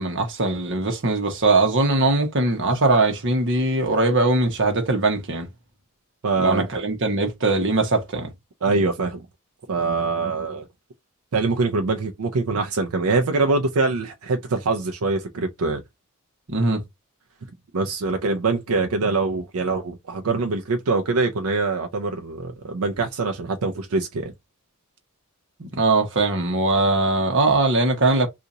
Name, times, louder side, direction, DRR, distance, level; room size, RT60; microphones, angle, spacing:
voice 1, 0.0-5.5 6.4-8.3 16.5-16.8 25.6-28.3, right 2 dB, 60° right, 1.0 m, -21 dB
voice 2, 6.2-6.7 8.6-9.2 9.7-10.7 11.3-15.8 17.7-24.3, right 3 dB, 80° right, 0.5 m, -24 dB
2.8 x 2.5 x 3.7 m
head